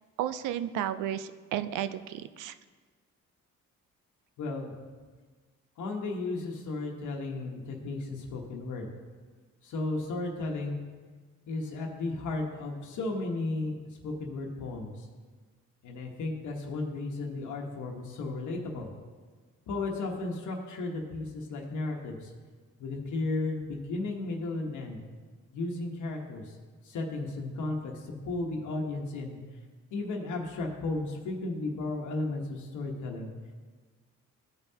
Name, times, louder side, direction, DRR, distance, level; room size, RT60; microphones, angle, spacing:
voice 1, 0.2-2.5, right 11 dB, 85° right, 12 dB, 0.5 m, -33 dB
voice 2, 4.4-4.7 5.8-8.9 9.6-10.8 11.5-13.7 14.0-15.1 15.8-18.9 19.7-22.3 22.8-25.0 25.5-26.5 26.8-29.4 29.9-33.3, left 2 dB, 75° left, 1 dB, 1.2 m, -34 dB
14.0 x 5.5 x 2.8 m, 1.4 s
cardioid pair, 90°, 30 cm